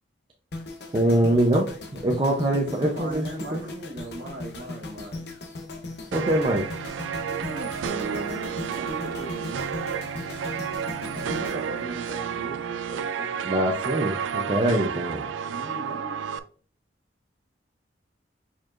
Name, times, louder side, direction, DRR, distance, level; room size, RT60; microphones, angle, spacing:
sound 1, 0.5-12.7 13.0-13.3, left 2 dB, 60° left, 0.8 m, -38 dB
voice 1, 0.9-1.7 2.0-3.2 6.1-6.7 13.4-15.3, right 1 dB, 25° right, 0 dB, 0.5 m, -23 dB
voice 2, 2.8-5.3 7.4-9.6 11.1-13.9 15.5-16.2, right 1 dB, 70° right, -2 dB, 1.0 m, -39 dB
sound 2, 6.1-16.4, right 7 dB, 90° right, 0.3 m, -31 dB
4.7 x 4.5 x 2.4 m, 0.42 s
head